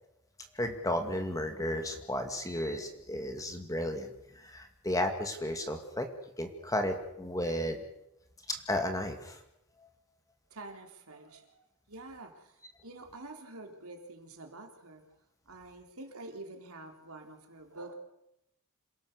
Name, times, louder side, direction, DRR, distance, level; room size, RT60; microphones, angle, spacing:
voice 1, 0.5-4.1 4.4-6.1 6.4-7.8 8.5-9.4, left 1 dB, 15° left, 5 dB, 2.3 m, -33 dB
voice 2, 10.5-11.5 11.9-12.5 12.8-15.0 15.5-17.9, right 2 dB, 75° right, 3 dB, 3.6 m, -47 dB
27.5 x 17.5 x 6.8 m, 0.83 s
head